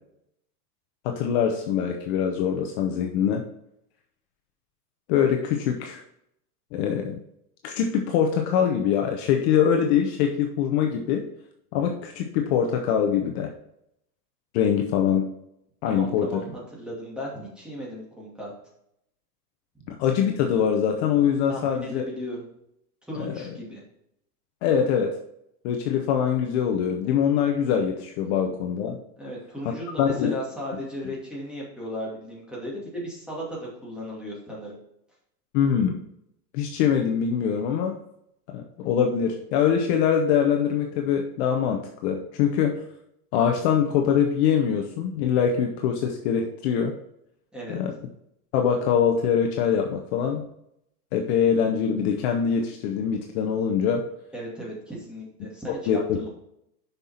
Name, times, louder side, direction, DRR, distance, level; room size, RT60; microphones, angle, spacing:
voice 1, 1.0-3.5 5.1-6.0 6.7-7.2 7.6-11.3 11.7-13.5 14.5-15.3 15.8-16.4 19.9-22.0 23.2-23.4 24.6-25.2 25.6-29.0 30.0-30.3 35.5-36.0 36.5-38.0 38.5-42.8 43.3-46.9 47.7-47.9 48.5-50.5 51.1-54.1 55.7-56.3, left 8 dB, 45° left, 4 dB, 0.8 m, -23 dB
voice 2, 15.8-18.5 21.5-22.5 23.1-23.8 29.2-34.8 47.5-47.8 54.3-56.3, equal, ahead, -5 dB, 2.4 m, -36 dB
7.0 x 5.7 x 4.3 m, 0.77 s
supercardioid pair, 150°, 48 cm